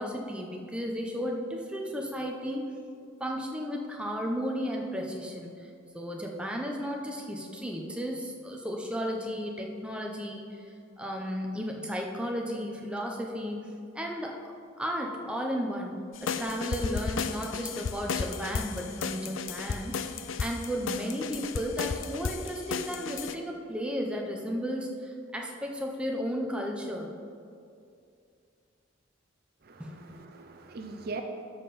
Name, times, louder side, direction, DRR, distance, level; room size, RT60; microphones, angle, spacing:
voice 1, 0.0-2.7 3.2-5.7 5.9-10.6 11.0-13.6 13.9-14.4 14.8-15.9 16.2-20.0 20.4-27.1 29.8-30.2, equal, 5° right, 0 dB, 0.8 m, -34 dB
sound 1, 16.2-23.3, left 5 dB, 75° left, 0.5 m, -34 dB
voice 2, 29.6-31.2, right 3 dB, 50° right, 4 dB, 0.6 m, -41 dB
13.0 x 5.6 x 4.2 m, 2.4 s
head